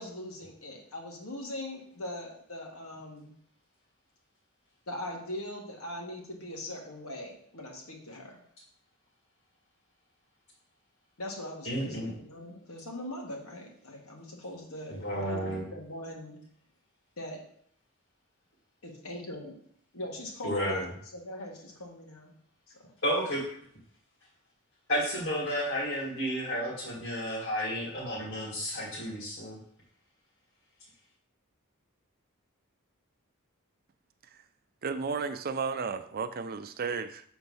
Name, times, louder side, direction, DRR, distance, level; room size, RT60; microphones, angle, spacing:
voice 1, 0.0-3.3 4.9-8.4 11.2-16.4 17.2-17.4 18.8-19.6 19.9-22.3 22.7-22.8, left 1 dB, 90° left, 1.8 m, -41 dB
voice 2, 11.6-12.1 15.0-15.6 20.4-20.9 23.0-23.4 24.9-29.6, equal, 70° left, 2.2 m, -31 dB
voice 3, 34.8-37.2, right 5 dB, 45° right, 0.5 m, -33 dB
7.1 x 4.4 x 5.5 m
head